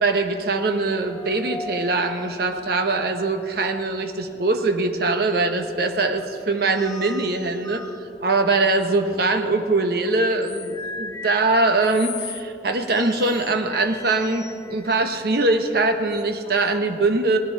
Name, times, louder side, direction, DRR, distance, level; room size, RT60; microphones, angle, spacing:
voice 1, 0.0-7.9 8.2-17.4, right 3 dB, 55° right, 6 dB, 0.9 m, -22 dB
sound 1, 0.9-3.4 4.0-4.6 5.7-5.8 6.2-8.0 9.8-12.5 12.9-15.0 16.1-16.8, left 4 dB, 20° left, 0.5 m, -39 dB
18.5 x 10.5 x 4.5 m, 2.7 s
head